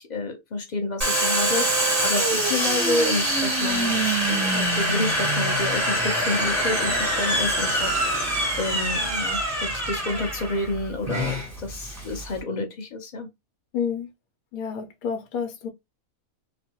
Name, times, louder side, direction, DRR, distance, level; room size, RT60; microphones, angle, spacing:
voice 1, 0.0-8.3 8.6-13.3, left 2 dB, 50° left, 0.5 m, -29 dB
Domestic sounds home sounds, 1.0-12.4, right 1 dB, 15° right, 0.8 m, -24 dB
voice 2, 13.7-14.1 14.5-15.7, left 6 dB, 80° left, 1.1 m, -29 dB
3.0 x 2.1 x 2.7 m
omnidirectional pair, 1.5 m